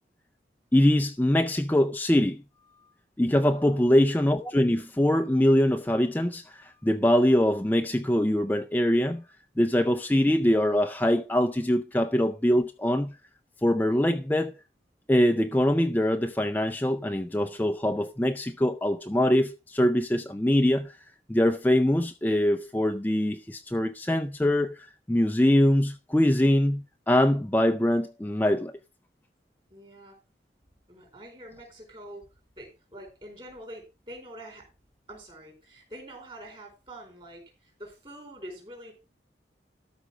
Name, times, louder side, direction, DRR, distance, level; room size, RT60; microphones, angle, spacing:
voice 1, 0.7-2.4 3.2-9.2 9.6-13.2 13.6-14.5 15.1-21.0 21.3-28.7, left 1 dB, 10° left, 0.4 m, -23 dB
voice 2, 3.5-3.8 29.7-30.2 30.9-32.2 32.6-34.6 35.1-38.9, right 1 dB, 30° right, 4.6 m, -45 dB
13.0 x 5.2 x 6.0 m
head